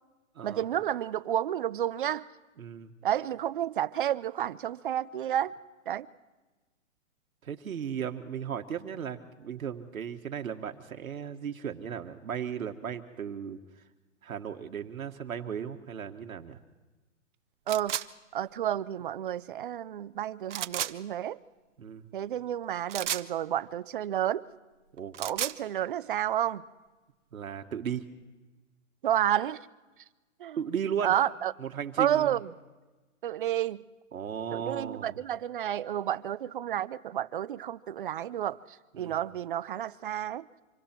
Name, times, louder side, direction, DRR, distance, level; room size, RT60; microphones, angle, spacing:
voice 1, 0.4-2.3 3.0-5.5 5.9-6.1 17.7-18.0 18.3-21.4 22.1-24.4 25.2-26.6 29.0-29.7 30.4-30.6 31.0-31.5 32.0-32.5 33.2-33.8 34.5-40.5, right 11 dB, 40° right, 0.5 m, -30 dB
voice 2, 2.6-2.9 7.4-13.6 14.2-16.6 21.8-22.0 24.9-25.2 27.3-28.0 30.6-31.1 31.6-32.4 34.1-35.1 38.9-39.2, right 8 dB, 85° right, 1.6 m, -36 dB
sound 1, 17.7-18.1 20.5-20.9 22.9-23.3 25.0-25.6, right 11 dB, 60° right, 0.9 m, -32 dB
26.0 x 23.0 x 4.5 m
hypercardioid pair, 160°, 41 cm